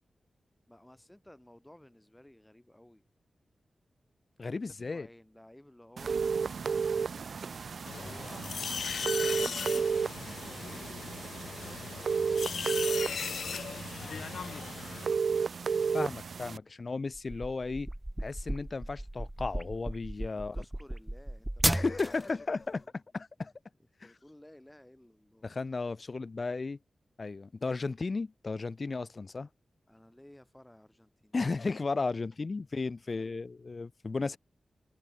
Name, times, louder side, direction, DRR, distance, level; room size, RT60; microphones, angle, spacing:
voice 1, 0.7-3.0 4.8-7.0 7.4-8.6 9.0-13.5 20.4-22.5 24.0-25.5 29.9-31.4 33.1-33.4, left 1 dB, 10° left, 6.3 m, -57 dB
voice 2, 4.4-5.1 15.9-17.9 18.2-20.6 21.6-23.5 25.4-26.8 27.2-29.5 31.3-34.4, left 3 dB, 40° left, 0.5 m, -34 dB
sound 1, 6.0-16.6, right 5 dB, 65° right, 0.4 m, -33 dB
sound 2, 7.9-15.1, left 6 dB, 85° left, 0.7 m, -38 dB
sound 3, 17.1-22.3, right 1 dB, 10° right, 0.5 m, -34 dB
wide cardioid pair, 125°, 0 cm